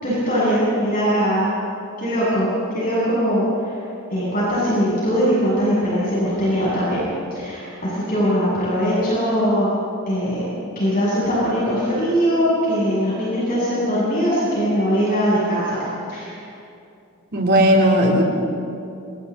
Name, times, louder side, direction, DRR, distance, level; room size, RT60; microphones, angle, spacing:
voice 1, 0.0-1.5 2.0-3.8 4.1-7.0 7.3-9.7 10.1-10.4 10.8-16.3, equal, 40° left, -9 dB, 7.6 m, -21 dB
voice 2, 17.3-18.2, equal, 50° right, -1 dB, 3.7 m, -15 dB
29.0 x 27.5 x 4.2 m, 2.6 s
head